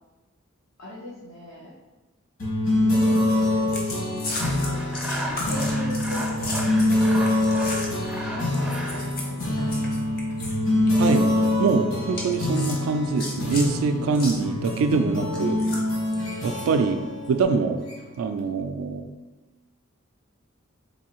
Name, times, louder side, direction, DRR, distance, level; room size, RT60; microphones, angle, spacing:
voice 1, 0.8-1.7 2.8-3.6 4.1-7.5 8.2-9.9 16.5-16.8, left 2 dB, 85° left, -5 dB, 0.6 m, -39 dB
sound 1, 2.4-18.3, left 1 dB, 65° left, 1.2 m, -25 dB
sound 2, 3.7-8.1 8.5-10.6 10.8-11.2 12.1-13.7 14.1-14.4 15.3-16.7 17.2-17.4, left 2 dB, 45° left, 0.7 m, -35 dB
Sawing, 4.3-9.1, equal, 5° right, 0.4 m, -35 dB
voice 2, 11.0-15.6 16.4-17.0 17.3-17.8 18.2-19.1, right 4 dB, 80° right, 8 dB, 0.3 m, -24 dB
3.9 x 2.7 x 2.9 m, 1.2 s
head